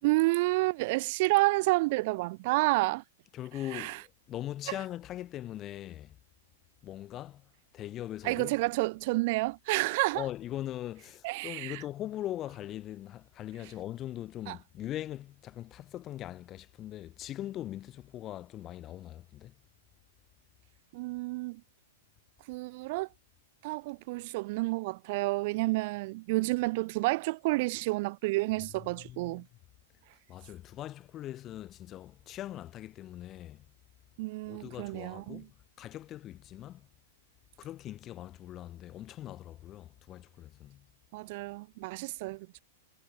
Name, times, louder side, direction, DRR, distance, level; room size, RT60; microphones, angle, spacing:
voice 1, 0.0-3.0 3.7-4.0 8.2-10.2 11.2-11.8 14.5-14.6 20.9-21.6 22.5-23.1 23.6-29.4 34.2-35.4 41.1-42.6, right 23 dB, 50° right, 4.5 m, -30 dB
voice 2, 3.3-6.2 6.8-8.6 10.1-19.5 28.7-29.5 30.3-33.7 34.5-36.9 37.6-40.9, left 13 dB, 30° left, 6.1 m, -41 dB
hypercardioid pair, 105°, 0 cm